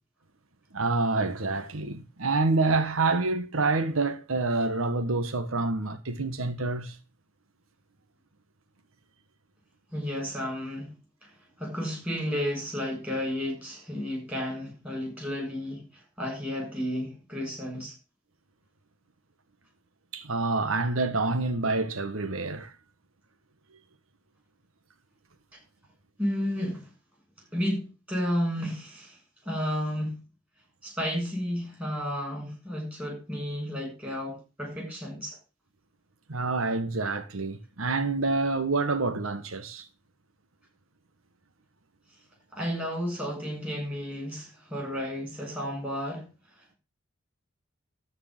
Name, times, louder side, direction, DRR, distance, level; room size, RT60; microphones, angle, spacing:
voice 1, 0.7-7.0 20.1-22.7 36.3-39.9, right 3 dB, 80° right, 1.3 m, -27 dB
voice 2, 9.9-10.9 11.2-11.3 11.6-17.9 26.2-26.9 27.5-29.2 29.4-30.2 30.8-35.4 42.5-46.3, equal, 5° right, 6.6 m, -32 dB
13.5 x 4.8 x 7.5 m
head